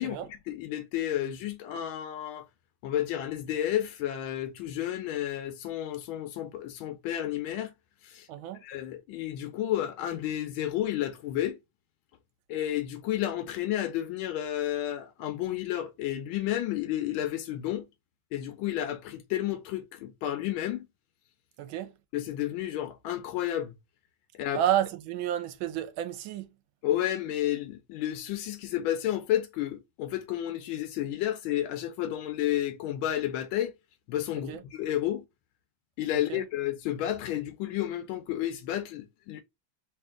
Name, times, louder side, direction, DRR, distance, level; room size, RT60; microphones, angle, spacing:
voice 1, 0.0-2.5 2.8-7.7 8.0-8.3 8.6-11.6 12.5-17.8 18.3-20.9 22.1-23.7 24.4-24.6 26.8-33.7 34.1-35.2 36.0-39.4, left 12 dB, 75° left, 1.3 m, -31 dB
voice 2, 8.3-8.6 21.6-21.9 24.5-26.5 34.5-34.6 36.3-36.4, right 11 dB, 75° right, 1.3 m, -30 dB
3.4 x 2.8 x 3.5 m
omnidirectional pair, 2.3 m